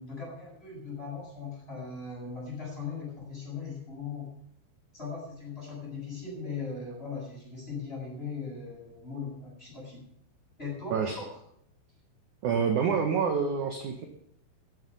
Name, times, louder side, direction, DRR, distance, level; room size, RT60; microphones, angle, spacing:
voice 1, 0.0-4.3 4.9-10.0 10.6-11.3, left 4 dB, 10° left, -3 dB, 7.5 m, -39 dB
voice 2, 12.4-14.1, right 6 dB, 60° right, 5 dB, 2.2 m, -27 dB
15.0 x 11.5 x 5.5 m, 0.73 s
omnidirectional pair, 5.0 m